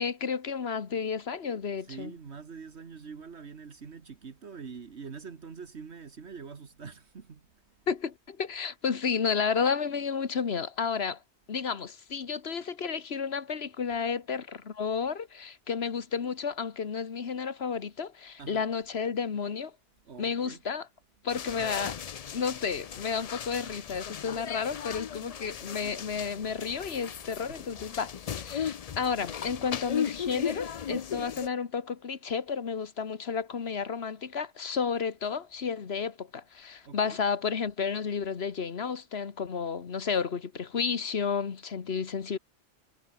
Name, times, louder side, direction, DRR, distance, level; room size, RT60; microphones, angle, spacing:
voice 1, 0.0-2.1 7.9-11.2 11.5-19.7 20.2-20.9 21.2-22.0 22.3-42.4, left 6 dB, 65° left, 1.5 m, -32 dB
voice 2, 1.8-7.6 18.4-18.7 20.0-20.6 27.5-27.8 36.9-37.2, right 5 dB, 75° right, 1.8 m, -45 dB
sound 1, 21.3-31.5, left 8 dB, 50° left, 0.5 m, -37 dB
omnidirectional pair, 1.2 m